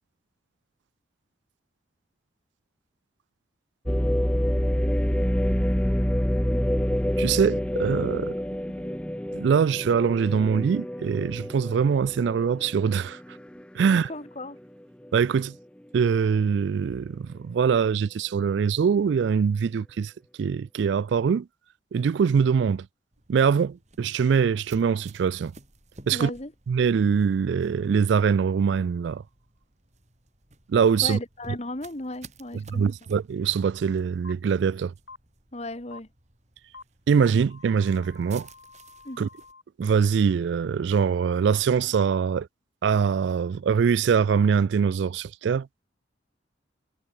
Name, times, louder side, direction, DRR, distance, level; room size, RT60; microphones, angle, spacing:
sound 1, 3.9-13.8 14.3-14.4 15.0-15.4, equal, 5° left, 0.7 m, -27 dB
voice 1, 7.2-8.4 9.4-13.2 13.7-14.1 15.1-15.5 15.9-20.1 20.4-21.4 21.9-22.9 23.3-25.5 26.1-26.3 26.7-29.2 30.7-31.2 32.7-34.9 37.1-38.5 39.2-39.3 39.8-42.5 42.8-45.7, right 6 dB, 65° right, 0.3 m, -23 dB
voice 2, 13.8-14.6 26.1-26.5 31.0-33.1 35.5-36.1 39.0-39.3, left 2 dB, 35° left, 1.7 m, -36 dB
sound 2, 23.1-39.5, right 3 dB, 35° right, 3.5 m, -54 dB
sound 3, 34.2-34.3 35.1-35.2 35.9-36.0 36.7-36.8 37.5-39.6, left 4 dB, 75° left, 4.7 m, -48 dB
head